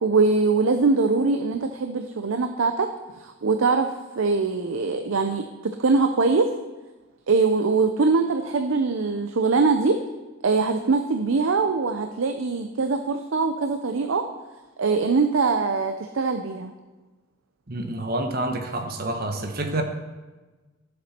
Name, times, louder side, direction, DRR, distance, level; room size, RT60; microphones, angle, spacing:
voice 1, 0.0-2.9 3.2-3.9 4.2-6.5 7.3-10.0 10.4-14.3 14.8-16.7, right 4 dB, 90° right, 7 dB, 0.6 m, -22 dB
voice 2, 17.7-19.8, right 2 dB, 50° right, 5 dB, 1.1 m, -28 dB
15.0 x 7.5 x 4.3 m, 1.2 s
head